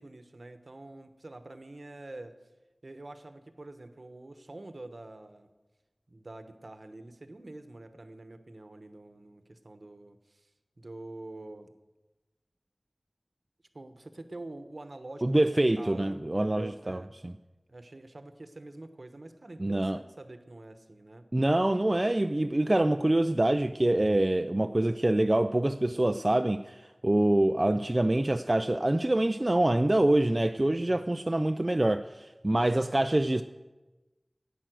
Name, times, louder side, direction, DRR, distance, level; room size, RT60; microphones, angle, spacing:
voice 1, 0.0-2.4 2.8-5.5 6.1-10.5 10.8-11.7 13.7-17.1 17.7-21.3 30.8-31.1, right 2 dB, 60° right, 9 dB, 1.1 m, -46 dB
voice 2, 15.2-17.3 19.6-20.0 21.3-33.4, right 1 dB, 35° right, 8 dB, 0.4 m, -25 dB
11.5 x 8.9 x 7.7 m, 1.1 s
wide cardioid pair, 50°, 0 cm